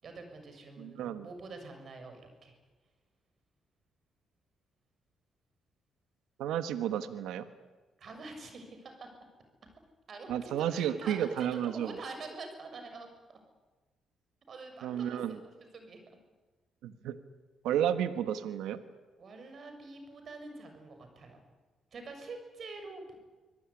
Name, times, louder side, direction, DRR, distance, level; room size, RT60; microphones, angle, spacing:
voice 1, 0.0-2.6 8.0-9.1 10.1-13.4 14.5-16.0 19.2-21.4 21.9-23.2, right 3 dB, 50° right, 6 dB, 6.8 m, -46 dB
voice 2, 0.8-1.3 6.4-7.5 10.3-11.9 14.8-15.4 16.8-17.2 17.6-18.8, right 10 dB, 90° right, 10 dB, 1.4 m, -32 dB
25.5 x 18.0 x 10.0 m, 1.3 s
cardioid pair, 90°, 0 cm